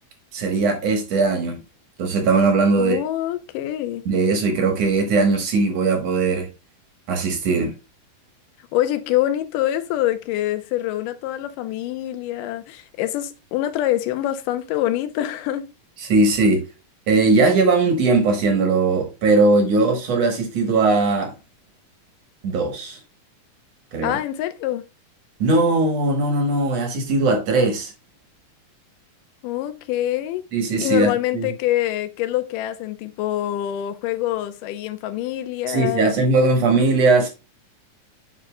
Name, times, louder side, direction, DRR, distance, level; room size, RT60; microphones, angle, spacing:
voice 1, 0.3-1.6 2.0-3.0 4.1-6.5 7.1-7.7 16.0-16.6 17.1-21.3 22.4-23.0 23.9-24.2 25.4-27.9 30.5-31.5 35.7-37.3, right 3 dB, 60° right, 1.9 m, -19 dB
voice 2, 2.8-4.1 8.7-15.7 24.0-24.8 29.4-30.4 30.8-36.2, left 13 dB, 75° left, 2.2 m, -25 dB
8.3 x 5.7 x 2.2 m
omnidirectional pair, 4.1 m